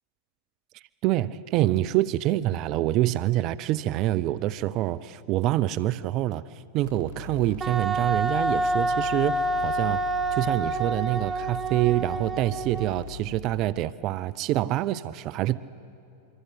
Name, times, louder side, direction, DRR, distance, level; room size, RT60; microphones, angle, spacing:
voice 1, 1.0-6.4 6.7-10.0 10.3-15.6, right 15 dB, 45° right, 16 dB, 0.5 m, -26 dB
sound 1, 6.8-13.7, left 4 dB, 55° left, 4.4 m, -41 dB
Wind instrument woodwind instrument, 7.6-13.1, right 2 dB, 20° right, 1.4 m, -28 dB
26.0 x 24.0 x 8.2 m, 2.7 s
figure-of-eight pair, 90°, 0 cm